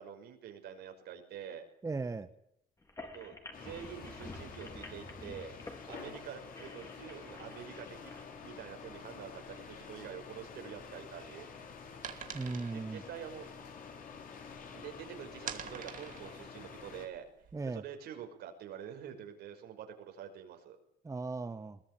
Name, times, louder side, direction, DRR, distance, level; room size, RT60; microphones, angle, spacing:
voice 1, 0.0-1.6 3.1-3.3 3.6-5.5 5.9-8.1 8.4-11.5 12.6-13.5 14.7-17.3 17.7-20.8, right 9 dB, 75° right, 5 dB, 5.6 m, -46 dB
voice 2, 1.8-2.3 12.3-13.0 17.5-17.8 21.0-21.8, right 3 dB, 20° right, 9 dB, 1.3 m, -37 dB
sound 1, 2.8-8.2, left 2 dB, 20° left, 4.3 m, -50 dB
sound 2, 3.5-17.1, left 5 dB, 55° left, 5.1 m, -49 dB
sound 3, 10.8-14.8 15.1-17.8, right 8 dB, 50° right, 2.5 m, -47 dB
22.0 x 20.5 x 9.2 m, 0.73 s
cardioid pair, 110°, 17 cm